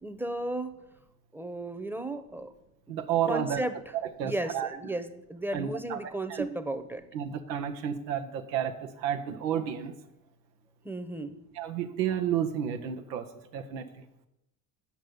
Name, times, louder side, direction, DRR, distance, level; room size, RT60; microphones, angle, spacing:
voice 1, 0.0-0.7 1.3-2.5 2.9-3.0 3.3-3.8 4.2-7.0 10.8-11.4, right 1 dB, 5° right, 10 dB, 0.9 m, -34 dB
voice 2, 2.9-3.6 4.0-4.8 5.5-6.0 6.3-6.5 7.1-9.9 11.5-13.3 13.5-13.9, right 9 dB, 90° right, 4 dB, 0.9 m, -31 dB
8.2 x 5.3 x 7.7 m, 0.87 s
hypercardioid pair, 70°, 49 cm